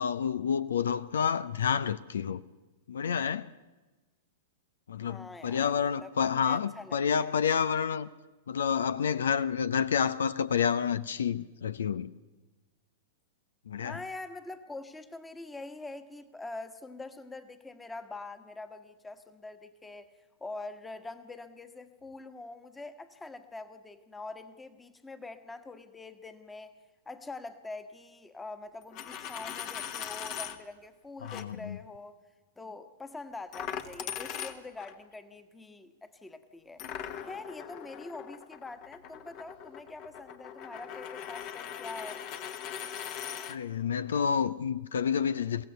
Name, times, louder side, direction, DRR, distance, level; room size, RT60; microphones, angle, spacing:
voice 1, 0.0-2.4 2.9-3.5 4.9-8.1 8.5-12.1 13.7-14.0 31.2-31.8 43.5-45.6, left 7 dB, 75° left, 0.6 m, -29 dB
voice 2, 5.0-5.7 6.0-7.3 13.8-20.1 20.4-26.7 27.0-32.1 32.6-36.8 37.2-42.2, left 3 dB, 10° left, 1.4 m, -44 dB
Coin (dropping), 28.8-30.6 31.2-31.4 33.5-34.9 36.8-43.6, left 9 dB, 45° left, 1.4 m, -40 dB
22.5 x 17.0 x 6.8 m
figure-of-eight pair, 105°, 0 cm